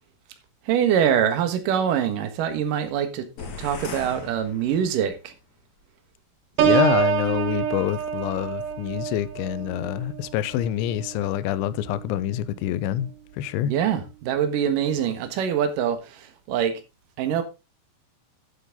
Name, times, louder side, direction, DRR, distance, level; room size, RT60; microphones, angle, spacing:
voice 1, 0.7-3.2 3.6-5.3 13.6-16.7 17.2-17.4, right 9 dB, 60° right, 2.4 m, -24 dB
sound 1, 3.4-5.2, left 4 dB, 45° left, 2.4 m, -38 dB
voice 2, 6.6-13.1 13.4-13.7, left 12 dB, 80° left, 2.9 m, -26 dB
Piano, 6.6-12.2 12.7-13.0, right 9 dB, 85° right, 1.8 m, -27 dB
10.5 x 8.1 x 3.8 m
omnidirectional pair, 5.5 m